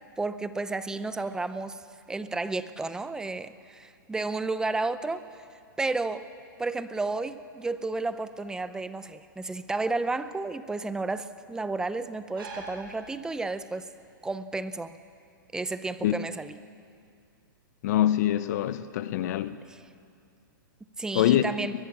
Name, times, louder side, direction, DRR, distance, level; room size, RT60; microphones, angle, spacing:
voice 1, 0.2-1.8 2.1-5.2 5.8-6.3 6.6-13.8 14.2-15.0 15.5-16.6 19.7-19.8 21.0-21.7, right 3 dB, 5° right, 0.6 m, -32 dB
sound 1, 6.8-13.7, right 3 dB, 80° right, 8.0 m, -49 dB
voice 2, 17.8-19.6 21.1-21.5, left 12 dB, 50° left, 0.8 m, -24 dB
22.0 x 20.0 x 7.3 m
hypercardioid pair, 145°, 12 cm